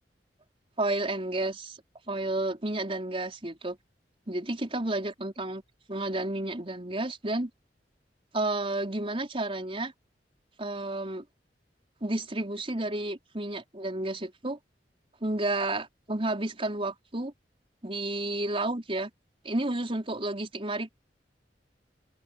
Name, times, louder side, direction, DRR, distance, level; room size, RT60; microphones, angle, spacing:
voice 1, 0.8-1.8 2.1-3.8 4.3-5.6 5.9-7.5 8.3-9.9 10.6-11.2 12.0-14.6 15.2-17.3 17.8-19.1 19.4-20.9, right 2 dB, 35° right, 4.7 m, -31 dB
open air
head